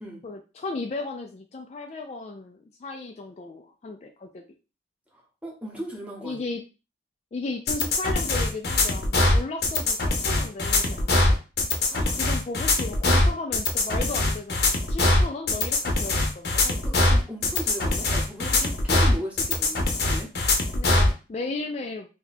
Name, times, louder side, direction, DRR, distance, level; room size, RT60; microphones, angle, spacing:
voice 1, 0.2-4.4 6.2-6.6 7.3-11.4 12.2-16.6 20.7-22.1, left 3 dB, 40° left, 4 dB, 0.3 m, -35 dB
voice 2, 5.1-6.4 11.9-12.2 16.6-20.3, equal, 5° right, -2 dB, 0.9 m, -37 dB
sound 1, 7.7-21.1, left 2 dB, 60° left, 0.7 m, -22 dB
2.7 x 2.3 x 4.0 m, 0.32 s
head